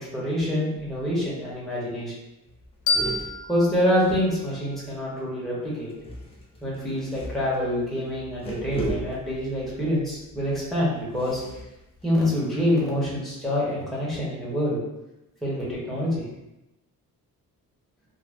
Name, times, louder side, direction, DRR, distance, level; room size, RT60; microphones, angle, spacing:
voice 1, 0.0-2.1 3.5-5.9 6.6-11.4 12.0-14.8 15.4-16.3, equal, ahead, -8 dB, 1.0 m, -26 dB
sound 1, 0.7-1.2 1.5-1.6 1.9-2.1 2.4-4.8 5.9-12.8, right 1 dB, 15° left, 0.6 m, -38 dB
sound 2, 2.9-5.7, left 3 dB, 60° left, 0.5 m, -31 dB
2.5 x 2.1 x 3.4 m, 0.95 s
cardioid pair, 120°, 35 cm